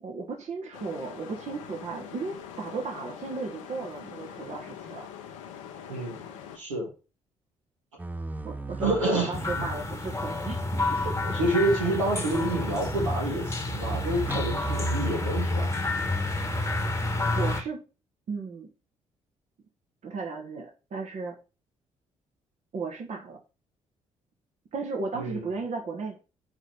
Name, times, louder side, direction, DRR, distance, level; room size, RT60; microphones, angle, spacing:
voice 1, 0.0-5.1 8.4-10.6 10.9-11.5 17.3-17.8 18.3-18.7 20.0-21.4 22.7-23.4 24.7-26.2, right 4 dB, 45° right, 1.2 m, -35 dB
sound 1, 0.7-6.6, left 8 dB, 70° left, 0.7 m, -43 dB
voice 2, 5.9-6.2 6.5-6.9 8.8-9.7 11.3-15.7 25.1-25.5, right 2 dB, 80° right, 1.9 m, -28 dB
sound 2, 8.0-9.9 10.6-11.6 12.4-13.5 14.2-14.5, right 2 dB, 10° right, 0.4 m, -37 dB
sound 3, 9.3-17.6, left 2 dB, 15° left, 1.2 m, -29 dB
4.8 x 4.0 x 5.8 m
figure-of-eight pair, 45°, 16 cm